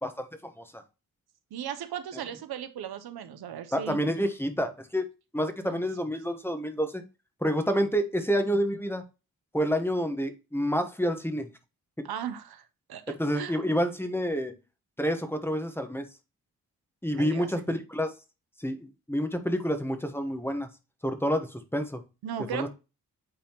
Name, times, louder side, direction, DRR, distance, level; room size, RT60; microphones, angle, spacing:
voice 1, 0.0-0.8 3.7-5.1 5.3-7.0 7.4-9.0 9.5-11.5 12.0-12.1 13.1-14.5 15.0-16.1 17.0-18.1 18.6-20.7 21.0-22.0 22.5-22.7, equal, 5° left, 8 dB, 1.2 m, -28 dB
voice 2, 1.5-4.0 5.7-5.8 12.0-12.6 12.9-13.6 17.2-17.5 22.2-22.7, right 9 dB, 80° right, 10 dB, 0.8 m, -37 dB
8.8 x 4.2 x 3.0 m, 0.29 s
cardioid pair, 70°, 37 cm